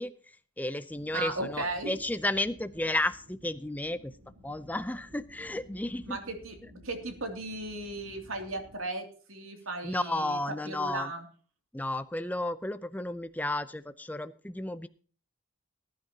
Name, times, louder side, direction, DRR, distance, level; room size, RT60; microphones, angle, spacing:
voice 1, 0.0-4.1 4.4-6.2 9.8-11.1 11.7-14.9, left 1 dB, 10° left, 12 dB, 0.5 m, -33 dB
sound 1, 0.9-8.8, equal, 70° right, 3.2 m, -55 dB
voice 2, 1.1-1.9 6.1-6.5 6.8-10.4 10.6-11.3, right 2 dB, 85° right, 5 dB, 2.8 m, -36 dB
19.5 x 10.5 x 2.9 m, 0.42 s
head